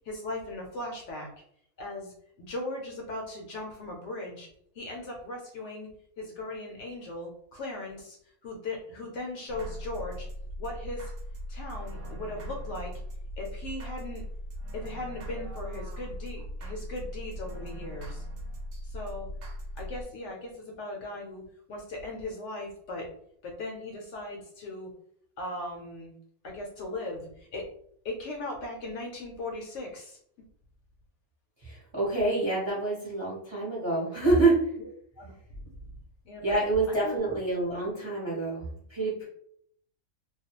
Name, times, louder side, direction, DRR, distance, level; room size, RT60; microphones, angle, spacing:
voice 1, 0.1-1.3 1.8-4.5 4.8-5.9 6.2-8.2 8.4-10.3 10.6-11.1 11.5-12.9 13.4-14.2 14.7-18.2 18.8-19.3 19.8-21.4 21.7-23.1 23.4-24.9 25.4-26.1 26.4-27.6 28.0-30.2 35.2-35.7 36.3-36.6 36.9-37.1, left 2 dB, 65° left, 0 dB, 0.8 m, -38 dB
sound 1, 9.5-20.0, equal, 70° right, 0.9 m, -39 dB
voice 2, 31.6-34.7 36.4-39.3, right 2 dB, 25° right, -6 dB, 0.7 m, -27 dB
2.3 x 2.2 x 2.8 m, 0.67 s
omnidirectional pair, 1.4 m